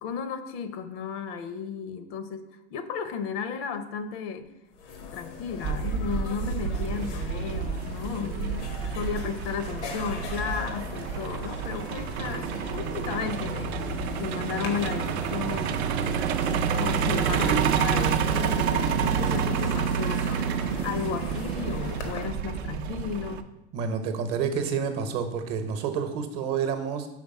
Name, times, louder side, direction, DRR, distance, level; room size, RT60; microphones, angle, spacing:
voice 1, 0.0-4.5 5.0-8.7 8.9-13.8 14.2-20.4 20.8-23.4, left 6 dB, 60° left, 10 dB, 0.7 m, -34 dB
sound 1, 4.5-4.6 4.7-22.2, left 5 dB, 85° left, 1.1 m, -40 dB
Truck, 5.6-23.4, right 7 dB, 65° right, 0.5 m, -28 dB
voice 2, 23.7-27.1, right 6 dB, 45° right, 7 dB, 0.9 m, -29 dB
5.1 x 3.4 x 5.3 m, 0.90 s
hypercardioid pair, 100°, 34 cm